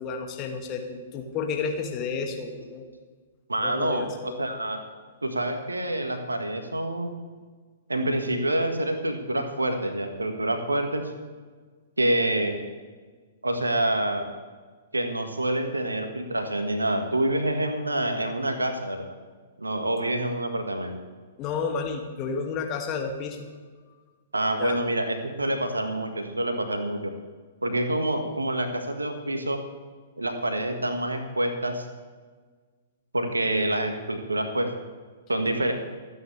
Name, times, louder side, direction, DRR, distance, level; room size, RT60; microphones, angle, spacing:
voice 1, 0.0-2.9 3.6-4.4 21.4-23.5 24.6-24.8, left 5 dB, 30° left, 2 dB, 2.1 m, -31 dB
voice 2, 3.5-4.8 5.2-7.1 7.9-11.1 12.0-12.6 13.4-14.2 14.9-19.1 19.6-21.0 24.3-27.1 27.6-29.6 30.2-31.8 33.1-34.7 35.3-35.7, right 1 dB, 80° right, 6 dB, 1.7 m, -27 dB
26.5 x 9.2 x 3.4 m, 1.5 s
figure-of-eight pair, 110°, 0 cm